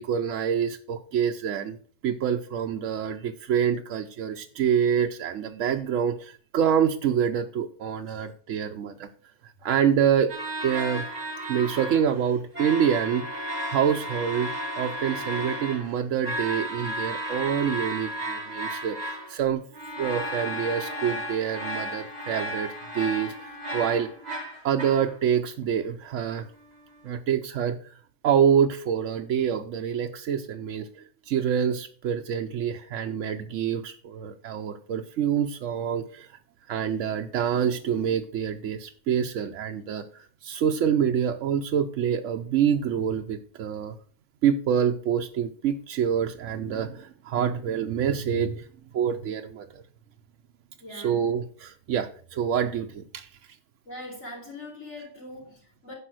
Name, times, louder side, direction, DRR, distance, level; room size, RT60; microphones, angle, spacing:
voice 1, 0.0-1.8 2.0-9.1 9.6-10.3 10.6-11.0 11.5-14.5 14.8-19.6 20.0-24.1 24.6-26.5 27.0-27.9 28.2-36.4 36.7-43.9 44.4-48.7 48.9-49.8 50.9-53.3, right 8 dB, 85° right, 1.0 m, -26 dB
sound 1, 10.3-12.2 12.5-19.4 19.7-25.2, equal, 35° right, 2.2 m, -34 dB
voice 2, 50.8-51.3 53.8-55.9, left 1 dB, 75° left, 4.4 m, -42 dB
10.0 x 5.6 x 6.2 m
omnidirectional pair, 1.2 m